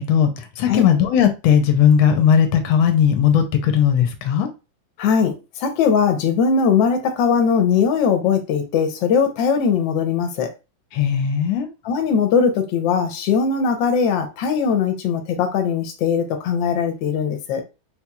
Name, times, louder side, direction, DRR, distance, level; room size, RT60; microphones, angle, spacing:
voice 1, 0.0-4.5 10.9-11.7, left 8 dB, 90° left, 1.4 m, -17 dB
voice 2, 5.0-10.5 11.8-17.6, left 6 dB, 70° left, 1.3 m, -20 dB
4.3 x 2.9 x 2.3 m
omnidirectional pair, 2.2 m